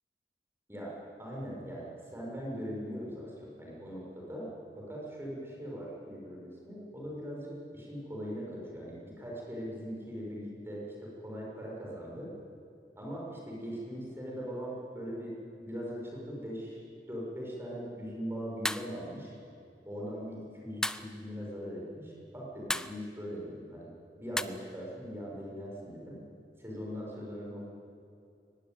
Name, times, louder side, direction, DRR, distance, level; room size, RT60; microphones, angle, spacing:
voice 1, 1.2-1.8 2.1-3.3 3.6-4.5 4.7-12.3 13.0-15.3 15.6-16.8 17.1-19.3 19.8-23.9 24.2-26.2 26.6-27.6, equal, 15° right, -3 dB, 6.5 m, -40 dB
sound 1, 18.6-18.9 20.8-21.1 22.7-23.0 24.4-24.5, left 1 dB, 5° left, 0.5 m, -32 dB
23.0 x 20.0 x 9.4 m, 2.6 s
head